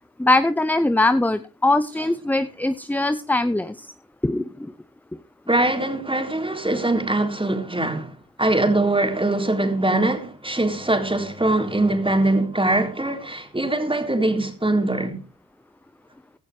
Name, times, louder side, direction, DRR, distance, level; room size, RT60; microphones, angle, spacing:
voice 1, 0.2-3.8 4.2-4.7, left 2 dB, 5° left, 0.6 m, -21 dB
voice 2, 5.5-8.1 8.4-15.2, right 2 dB, 15° right, 3.6 m, -22 dB
16.5 x 11.5 x 3.2 m
cardioid pair, 65°, 36 cm